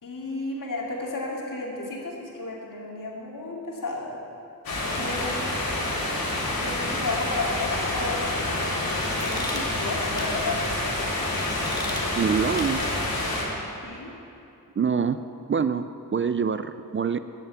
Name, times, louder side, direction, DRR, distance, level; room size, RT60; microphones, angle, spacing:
voice 1, 0.0-4.2 5.0-5.4 6.6-8.8 9.2-10.6 13.8-14.1, left 2 dB, 65° left, -2 dB, 2.3 m, -33 dB
sound 1, 4.6-13.4, left 1 dB, 90° left, 2.8 m, -28 dB
sound 2, 7.9-13.1, left 1 dB, 10° left, 2.0 m, -40 dB
voice 2, 12.2-13.0 14.8-15.2 15.5-17.2, right 6 dB, 35° right, 12 dB, 0.4 m, -25 dB
12.0 x 6.9 x 8.3 m, 2.8 s
cardioid pair, 70°, 35 cm